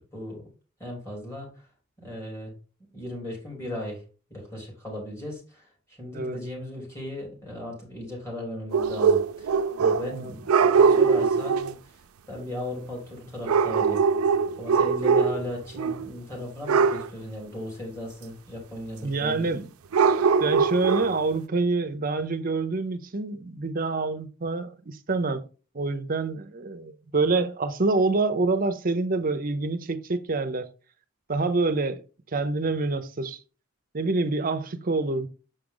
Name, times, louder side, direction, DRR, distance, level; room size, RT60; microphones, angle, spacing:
voice 1, 0.1-0.4 0.8-1.6 2.0-2.5 2.9-4.0 4.3-5.7 6.0-11.7 12.3-14.0 14.6-19.5, left 1 dB, 15° left, 3.3 m, -37 dB
sound 1, 8.7-10.2 10.5-11.7 13.5-15.5 15.8-16.1 16.7-17.1 19.9-21.2, right 5 dB, 90° right, 0.5 m, -21 dB
voice 2, 19.0-19.7 20.4-25.4 25.7-30.7 31.3-32.0 32.3-33.4 33.9-35.3, right 3 dB, 40° right, 0.7 m, -26 dB
6.6 x 5.0 x 3.8 m
head